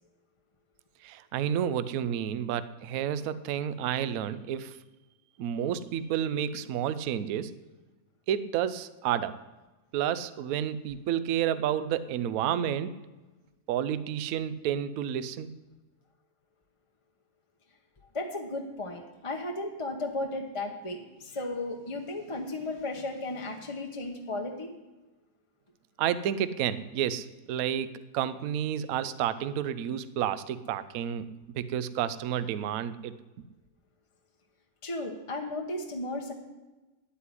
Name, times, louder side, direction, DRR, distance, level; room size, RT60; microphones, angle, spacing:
voice 1, 1.0-4.8 5.4-7.5 8.3-9.4 9.9-13.0 13.7-15.5 26.0-31.3 31.5-33.4, right 9 dB, 65° right, 14 dB, 0.9 m, -30 dB
voice 2, 18.1-24.7 34.8-36.3, left 2 dB, 25° left, 2 dB, 0.7 m, -35 dB
9.7 x 8.5 x 9.7 m, 1.1 s
omnidirectional pair, 2.0 m